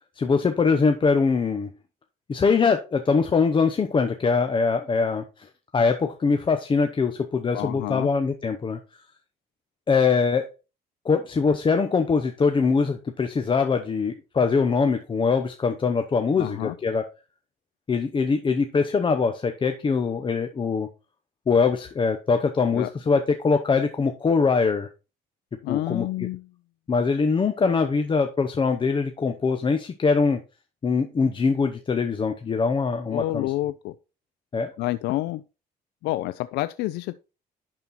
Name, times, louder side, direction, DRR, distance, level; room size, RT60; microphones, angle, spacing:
voice 1, 0.2-1.7 2.3-5.2 5.7-8.8 9.9-10.5 11.0-17.1 17.9-20.9 21.5-24.9 25.7-26.1 26.9-30.4 30.8-33.5 34.5-34.7, left 5 dB, 30° left, 0.9 m, -22 dB
voice 2, 7.5-8.1 16.4-16.8 22.7-22.9 25.6-26.5 33.1-34.0 34.8-35.4 36.0-37.2, left 16 dB, 80° left, 0.5 m, -28 dB
11.0 x 4.4 x 4.1 m
cardioid pair, 110°, 17 cm